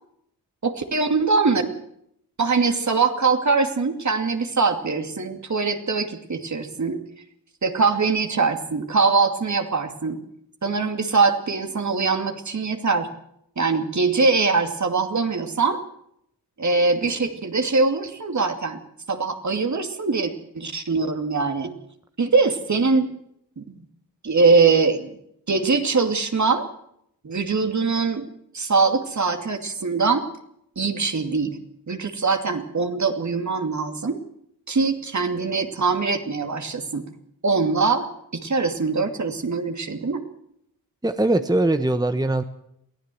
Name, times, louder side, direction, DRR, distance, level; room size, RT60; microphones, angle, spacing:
voice 1, 0.6-1.7 2.4-7.0 7.6-10.2 10.6-13.1 13.6-15.8 16.6-18.8 19.1-21.7 22.2-23.1 23.6-23.8 24.2-25.2 25.5-26.7 27.2-28.3 28.5-30.3 30.8-31.6 31.9-34.2 34.7-37.1 37.4-40.2, right 4 dB, 50° right, 6 dB, 2.6 m, -22 dB
voice 2, 41.0-42.4, right 2 dB, 10° right, 9 dB, 1.2 m, -21 dB
22.5 x 15.0 x 7.8 m, 0.74 s
cardioid pair, 55°, 37 cm